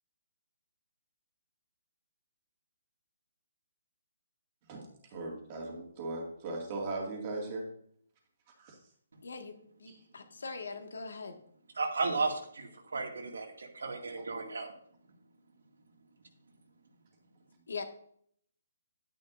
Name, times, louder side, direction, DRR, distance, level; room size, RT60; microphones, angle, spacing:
voice 1, 4.7-7.7 8.6-8.8, right 2 dB, 20° right, 0 dB, 2.1 m, -38 dB
voice 2, 9.2-9.5 9.8-11.4 17.7-17.8, left 4 dB, 85° left, 5 dB, 1.8 m, -41 dB
voice 3, 11.8-14.7, right 3 dB, 90° right, 2 dB, 2.2 m, -34 dB
11.0 x 9.7 x 2.6 m, 0.64 s
hypercardioid pair, 175°, 0 cm